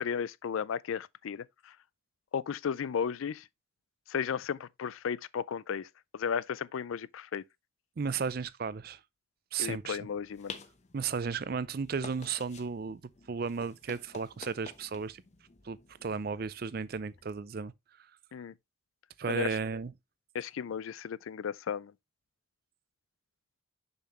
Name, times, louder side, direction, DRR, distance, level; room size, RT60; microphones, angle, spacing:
voice 1, 0.0-1.7 2.3-3.5 4.1-5.9 6.1-7.4 9.6-10.5 18.3-18.5 19.3-19.6 20.3-21.9, left 7 dB, 80° left, 0.4 m, -34 dB
voice 2, 8.0-9.0 9.5-10.1 10.9-13.0 13.3-15.2 15.6-17.7 19.2-19.9, right 5 dB, 45° right, 0.4 m, -34 dB
sound 1, 9.7-17.3, left 4 dB, 35° left, 0.8 m, -51 dB
6.9 x 5.7 x 3.0 m
head